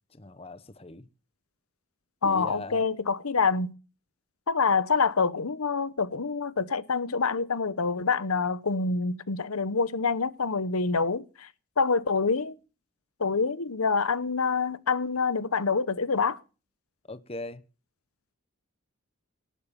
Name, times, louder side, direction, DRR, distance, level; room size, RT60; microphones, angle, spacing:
voice 1, 0.1-1.1 2.2-2.8 17.1-17.6, left 2 dB, 25° left, 0.9 m, -40 dB
voice 2, 2.2-3.7 4.5-11.5 11.8-12.6 13.2-16.4, left 4 dB, 85° left, 1.0 m, -26 dB
18.5 x 8.6 x 7.2 m
head